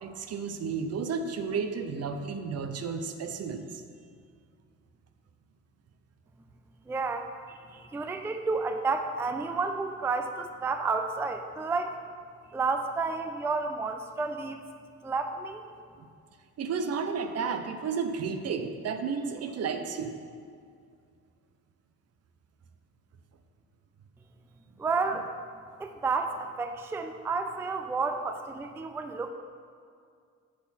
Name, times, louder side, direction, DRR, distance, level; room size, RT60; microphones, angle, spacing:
voice 1, 0.0-3.8 16.6-20.1, right 5 dB, 55° right, 7 dB, 0.6 m, -32 dB
voice 2, 6.9-12.0 12.5-14.6 15.0-15.6 24.8-25.3 25.8-29.3, right 4 dB, 10° right, 7 dB, 0.3 m, -31 dB
6.8 x 6.3 x 4.1 m, 2.2 s
cardioid pair, 90°, 30 cm